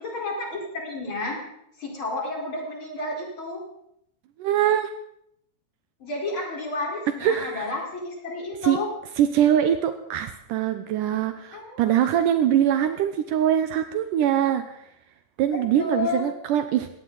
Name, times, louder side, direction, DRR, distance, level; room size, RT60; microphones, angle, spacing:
voice 1, 0.0-1.4 1.8-3.6 6.0-8.9 11.5-11.8 15.5-16.2, left 2 dB, 35° left, -1 dB, 5.1 m, -31 dB
voice 2, 4.4-4.9 7.2-7.7 8.6-8.8 9.2-14.8 15.4-16.9, right 10 dB, 75° right, 8 dB, 2.3 m, -23 dB
19.5 x 18.0 x 4.0 m, 0.74 s
omnidirectional pair, 4.0 m